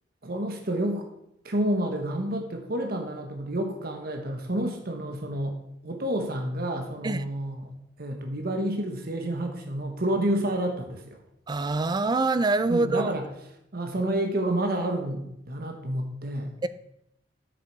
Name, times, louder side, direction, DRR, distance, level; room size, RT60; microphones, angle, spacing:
voice 1, 0.2-1.0 1.4-7.7 8.0-11.2 12.7-13.3 13.7-16.5, right 1 dB, 60° right, 4 dB, 1.1 m, -29 dB
voice 2, 11.5-13.1 16.6-16.7, right 3 dB, 25° right, 14 dB, 0.4 m, -24 dB
7.9 x 6.6 x 4.7 m, 0.79 s
head